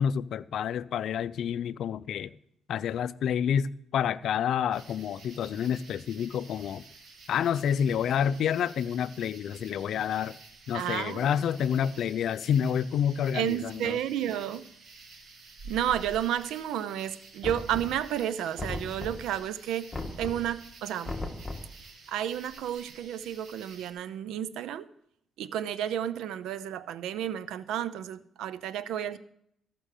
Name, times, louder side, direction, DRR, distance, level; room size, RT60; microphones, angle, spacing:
voice 1, 0.0-2.3 2.7-6.8 7.3-10.4 10.7-14.0, left 8 dB, 70° left, 0.4 m, -28 dB
sound 1, 4.7-23.9, right 3 dB, 55° right, 2.0 m, -51 dB
voice 2, 10.7-11.3 13.3-14.7 15.7-21.2 21.8-24.9 25.4-29.2, right 10 dB, 85° right, 0.6 m, -32 dB
Knock, 17.4-18.2 18.6-19.4 19.9-20.5 21.0-21.8, left 2 dB, 20° left, 1.6 m, -37 dB
14.0 x 6.2 x 6.6 m
cardioid pair, 90°, 0 cm